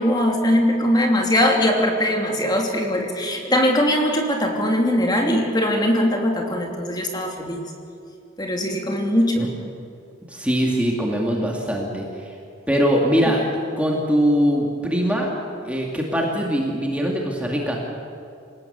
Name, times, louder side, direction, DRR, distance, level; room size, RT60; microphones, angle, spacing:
voice 1, 0.0-7.6 8.4-9.5, left 1 dB, 20° left, 1 dB, 2.9 m, -21 dB
voice 2, 10.3-12.3 12.7-15.3 15.6-17.8, equal, 5° right, -1 dB, 2.4 m, -22 dB
27.5 x 18.5 x 8.1 m, 2.4 s
head